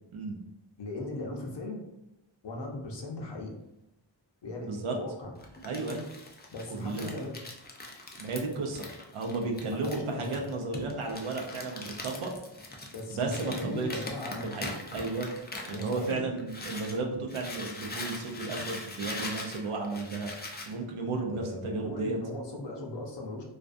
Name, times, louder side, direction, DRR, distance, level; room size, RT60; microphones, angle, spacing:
voice 1, 0.8-1.8 2.4-3.5 4.4-5.3 6.5-7.4 9.7-10.4 12.9-14.5 15.7-16.3 21.3-23.4, left 2 dB, 60° left, 0 dB, 0.7 m, -38 dB
Crumpling crinkling, 5.4-17.0 17.3-20.7, left 2 dB, 25° left, 0.3 m, -41 dB
voice 2, 5.6-6.1 6.7-7.1 8.2-8.9 9.1-12.3 13.1-14.1 14.4-15.3 15.7-20.3 20.7-22.2, right 3 dB, 85° right, 1 dB, 0.6 m, -33 dB
2.5 x 2.2 x 2.4 m, 0.89 s
wide cardioid pair, 80°, 48 cm